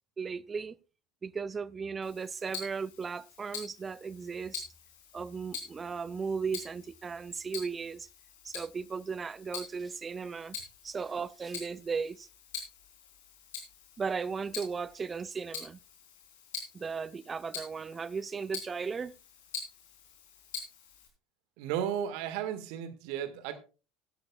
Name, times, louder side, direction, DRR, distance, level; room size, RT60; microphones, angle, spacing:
voice 1, 0.2-0.8 1.2-4.6 5.1-8.1 8.4-10.6 10.8-12.3 14.0-15.8 16.7-19.1, right 5 dB, 25° right, 0.5 m, -36 dB
Tick-tock, 2.0-21.1, left 5 dB, 70° left, 3.5 m, -46 dB
voice 2, 21.6-23.6, right 9 dB, 60° right, 1.6 m, -34 dB
16.0 x 12.5 x 2.3 m
figure-of-eight pair, 70°, 0 cm